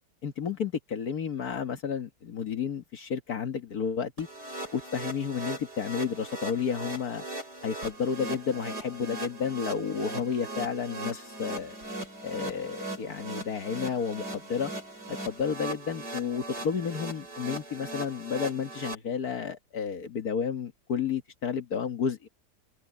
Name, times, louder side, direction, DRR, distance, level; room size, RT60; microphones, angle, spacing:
voice 1, 0.2-4.3 4.7-7.2 7.6-11.8 12.2-14.7 15.3-22.3, left 6 dB, 65° left, 1.9 m, -31 dB
sound 1, 4.2-19.0, right 2 dB, 85° right, 8.5 m, -39 dB
omnidirectional pair, 1.8 m